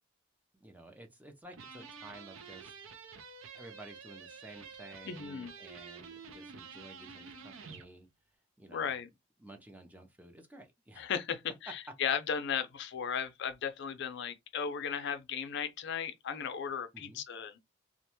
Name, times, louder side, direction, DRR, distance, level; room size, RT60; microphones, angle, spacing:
voice 1, 0.5-2.8 3.5-8.1 8.6-9.0 9.4-11.1 16.9-17.2, right 1 dB, 10° right, 0.4 m, -53 dB
sound 1, 1.5-7.9, right 5 dB, 85° right, 0.5 m, -49 dB
voice 2, 5.1-5.5 8.7-9.1 11.0-17.6, left 7 dB, 60° left, 0.4 m, -36 dB
2.4 x 2.2 x 2.9 m
head